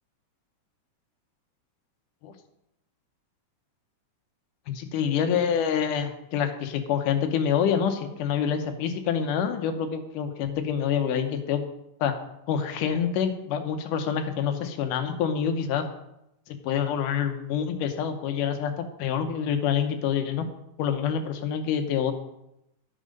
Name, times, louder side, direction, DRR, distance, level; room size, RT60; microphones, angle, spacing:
voice 1, 4.8-11.6 12.0-12.1 12.5-15.9 16.5-20.5 20.8-22.1, left 8 dB, 85° left, 7 dB, 2.5 m, -27 dB
10.0 x 7.7 x 5.3 m, 0.85 s
omnidirectional pair, 3.6 m